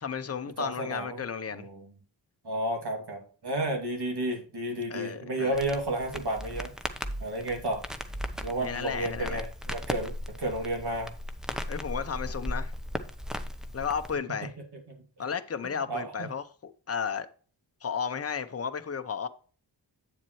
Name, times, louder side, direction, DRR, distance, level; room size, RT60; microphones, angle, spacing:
voice 1, 0.0-1.7 4.9-5.6 8.6-9.4 11.7-12.7 13.7-14.5 15.2-17.3 17.8-19.3, left 6 dB, 35° left, 0.8 m, -33 dB
voice 2, 0.6-1.2 1.5-1.9 2.4-6.7 7.2-7.8 8.4-10.1 10.4-11.1 15.9-16.3, right 1 dB, 60° right, 2.6 m, -32 dB
Crackle, 5.5-14.2, equal, ahead, 0.8 m, -37 dB
8.9 x 7.3 x 3.1 m
wide cardioid pair, 65°, 44 cm